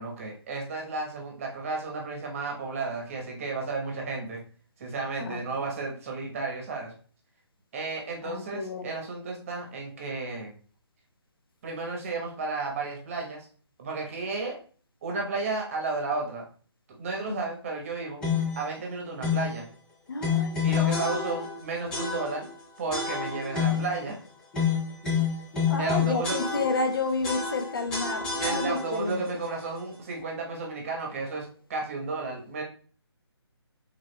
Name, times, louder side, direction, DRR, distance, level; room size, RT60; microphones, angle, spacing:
voice 1, 0.0-4.4 4.8-6.9 7.7-10.5 11.6-13.5 13.8-14.6 15.0-16.4 17.0-18.2 18.6-19.7 20.6-22.5 22.8-24.2 25.8-26.4 28.4-32.6, right 3 dB, 30° right, 1.0 m, -33 dB
voice 2, 8.2-8.9 17.3-17.4 20.1-21.3 25.7-29.4, left 3 dB, 55° left, 0.6 m, -31 dB
sound 1, 18.2-18.6 19.2-19.6 20.2-21.6 21.9-22.5 22.9-24.0 24.5-26.9 27.2-29.1, left 6 dB, 5° left, 0.4 m, -28 dB
4.8 x 3.7 x 2.2 m
figure-of-eight pair, 155°, 14 cm